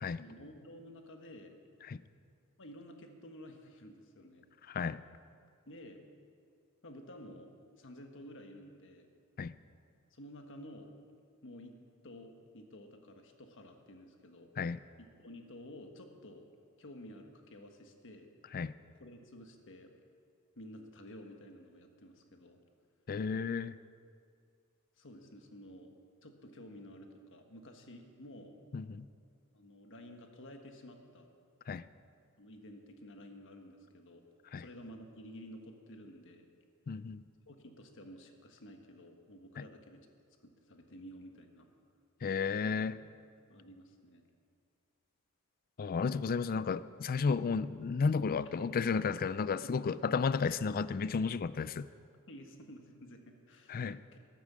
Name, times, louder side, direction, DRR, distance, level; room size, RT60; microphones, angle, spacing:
voice 1, 0.2-1.6 2.6-4.5 5.6-6.0 6.8-7.5 7.8-9.1 10.1-11.0 11.4-11.7 12.0-14.5 15.0-16.4 16.8-18.3 19.0-19.9 20.6-22.6 25.0-25.9 26.2-28.6 29.5-31.3 32.4-34.2 34.5-36.5 37.5-40.1 40.4-41.7 43.5-44.3 52.3-54.2, equal, 60° left, 4 dB, 1.5 m, -52 dB
voice 2, 4.6-5.0 9.4-9.5 14.6-14.8 18.5-18.7 23.1-23.8 28.7-29.1 31.7-31.8 34.5-34.6 36.9-37.3 42.2-43.0 45.8-51.9 53.7-54.0, left 5 dB, 40° left, 16 dB, 0.4 m, -33 dB
12.5 x 12.0 x 7.4 m, 2.2 s
head